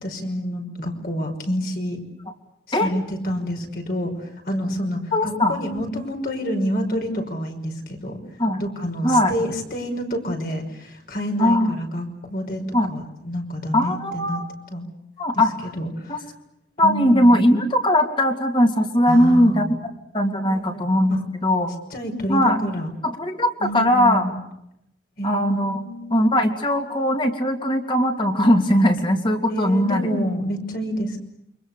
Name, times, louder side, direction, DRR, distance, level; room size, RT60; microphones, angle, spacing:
voice 1, 0.0-2.0 2.7-8.2 8.6-14.4 14.7-14.9 15.3-16.2 16.8-17.5 19.1-19.9 20.4-20.8 21.1-21.2 21.9-22.9 23.6-24.4 25.2-25.4 25.7-26.2 29.5-31.2, equal, 50° left, 3 dB, 5.5 m, -28 dB
voice 2, 5.1-5.6 8.4-8.6 9.0-9.3 11.4-11.8 12.7-12.9 13.7-14.5 15.2-15.5 16.1-16.2 16.8-19.7 20.1-21.7 22.3-22.6 23.0-24.3 25.2-25.8 26.1-30.1, equal, 30° left, 4 dB, 3.0 m, -19 dB
28.5 x 25.0 x 6.9 m, 0.82 s
head